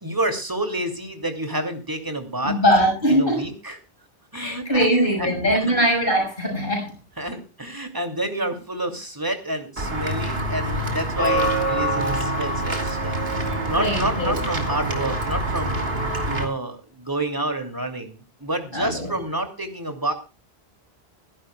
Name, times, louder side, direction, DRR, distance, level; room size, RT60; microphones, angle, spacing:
voice 1, 0.0-2.6 3.1-3.8 4.3-4.9 5.2-5.9 7.2-13.2 13.7-15.8 16.2-20.1, right 1 dB, 20° right, 6 dB, 2.7 m, -29 dB
voice 2, 2.4-3.5 4.3-7.0 13.6-14.4 18.7-19.1, equal, 55° left, 0 dB, 6.4 m, -21 dB
Walk footsteps / Bell, 9.8-16.4, right 1 dB, 70° right, 2.9 m, -25 dB
25.0 x 12.0 x 2.3 m, 0.32 s
omnidirectional pair, 1.1 m